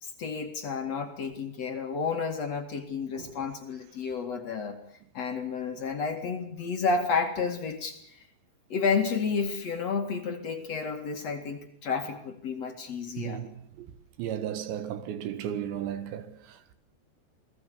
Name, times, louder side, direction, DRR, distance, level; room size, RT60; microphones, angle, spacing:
voice 1, 0.0-4.8 5.1-8.0 8.7-13.4, left 5 dB, 45° left, 2.7 m, -31 dB
voice 2, 13.2-13.9 14.2-16.7, right 10 dB, 90° right, 3.9 m, -35 dB
28.5 x 20.0 x 7.0 m
omnidirectional pair, 5.0 m